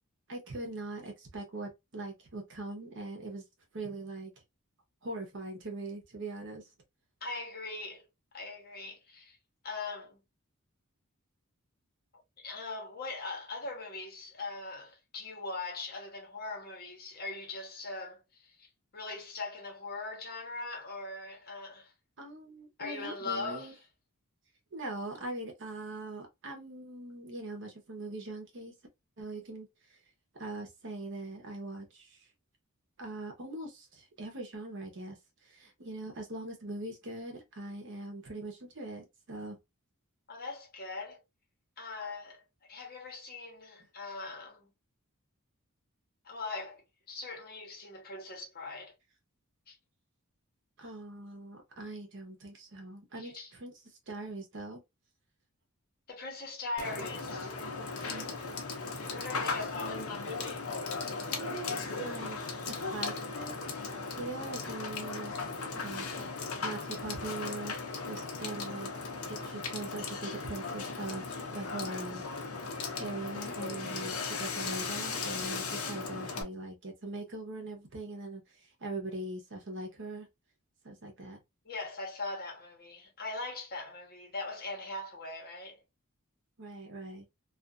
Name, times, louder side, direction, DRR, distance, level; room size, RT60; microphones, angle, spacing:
voice 1, 0.3-3.4 3.7-4.3 5.0-6.6 22.2-23.7 24.7-28.7 29.2-29.7 30.3-32.2 33.0-35.2 35.4-39.6 50.8-53.7 54.1-54.8 58.1-58.3 61.3-62.4 62.6-63.5 63.9-65.4 65.7-72.3 72.7-78.4 78.8-80.3 80.8-81.4 86.6-87.3, right 2 dB, 55° right, 0.9 m, -41 dB
voice 2, 7.2-8.1 8.3-9.4 9.6-10.2 12.4-18.7 18.9-21.9 22.8-23.8 40.3-41.2 41.8-42.4 42.7-44.7 46.2-46.8 47.1-48.9 49.7-49.8 53.1-53.5 56.1-57.5 59.1-60.0 81.6-85.8, left 3 dB, 45° left, 1.1 m, -40 dB
Water / Water tap faucet / Sink (filling or washing), 56.8-76.4, left 4 dB, 75° left, 0.7 m, -37 dB
2.5 x 2.4 x 2.3 m
head